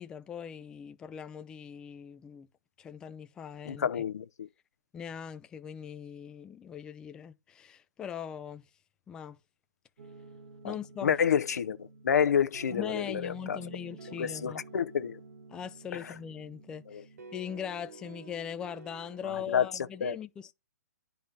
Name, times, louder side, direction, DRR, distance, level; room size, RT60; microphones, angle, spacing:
voice 1, 0.0-2.5 2.8-3.9 4.9-8.7 9.1-9.4 10.6-11.1 12.7-14.6 15.5-20.5, left 8 dB, 10° left, 0.3 m, -41 dB
voice 2, 3.7-4.5 10.6-10.7 11.0-13.6 14.1-15.2 15.9-16.1 16.9-17.0 19.2-19.7 20.0-20.2, left 8 dB, 80° left, 0.7 m, -29 dB
sound 1, 10.0-20.0, right 3 dB, 75° right, 1.4 m, -50 dB
10.0 x 4.0 x 4.6 m
hypercardioid pair, 155°, 9 cm